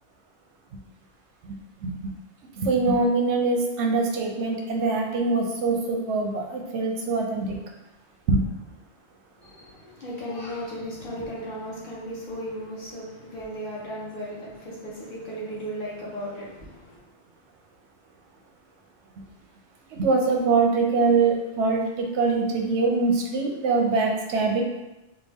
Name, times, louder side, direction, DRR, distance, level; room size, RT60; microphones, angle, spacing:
voice 1, 1.4-1.9 2.6-7.6 8.3-8.4 19.9-24.6, right 3 dB, 90° right, 1 dB, 0.9 m, -23 dB
voice 2, 9.4-17.0, equal, 50° left, -6 dB, 1.2 m, -36 dB
3.5 x 2.2 x 3.4 m, 1.0 s
omnidirectional pair, 1.2 m